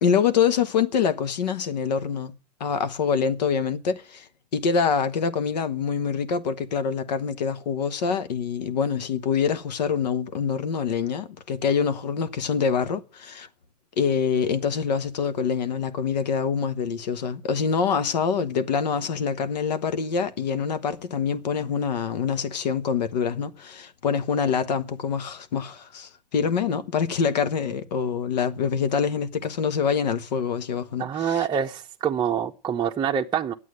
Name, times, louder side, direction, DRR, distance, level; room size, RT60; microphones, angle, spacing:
voice 1, 0.0-2.3 2.6-13.5 14.0-31.5, left 6 dB, 80° left, 1.1 m, -25 dB
voice 2, 31.0-33.5, right 8 dB, 20° right, 0.7 m, -26 dB
9.5 x 8.2 x 7.8 m
hypercardioid pair, 110°, 21 cm